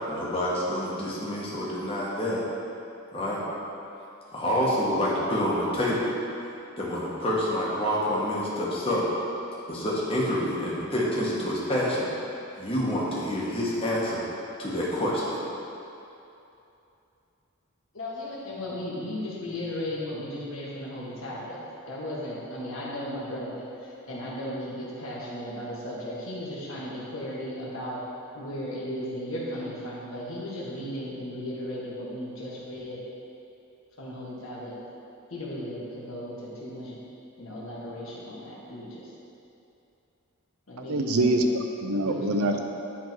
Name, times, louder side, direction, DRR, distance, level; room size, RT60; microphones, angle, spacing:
voice 1, 0.1-2.4 3.1-3.4 4.3-6.1 6.8-9.0 9.7-12.1 12.6-14.2 14.6-15.4, equal, 25° left, -6 dB, 1.4 m, -27 dB
voice 2, 17.9-21.6 21.9-28.0 28.3-33.0 34.0-34.8 35.3-37.0 37.4-39.1 40.7-41.3 41.9-42.5, left 1 dB, 70° left, -6 dB, 1.7 m, -36 dB
voice 3, 40.9-42.6, right 1 dB, 90° right, 4 dB, 0.6 m, -24 dB
10.5 x 3.8 x 4.6 m, 2.8 s
head